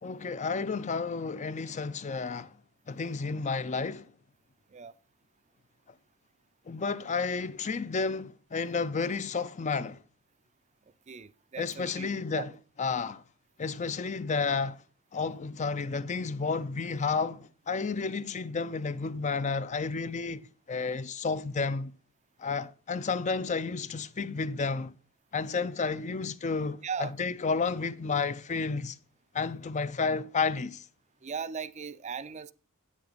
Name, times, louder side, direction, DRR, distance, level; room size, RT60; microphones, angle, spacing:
voice 1, 0.0-2.6 2.9-4.1 6.7-10.0 11.6-12.5 12.8-13.2 13.6-14.8 15.1-21.9 22.4-25.0 25.3-29.0 29.3-30.9, left 4 dB, 30° left, 0.4 m, -31 dB
voice 2, 11.1-12.1 12.4-12.5 26.8-27.1 31.2-32.5, right 6 dB, 30° right, 0.4 m, -37 dB
9.8 x 8.6 x 4.0 m
head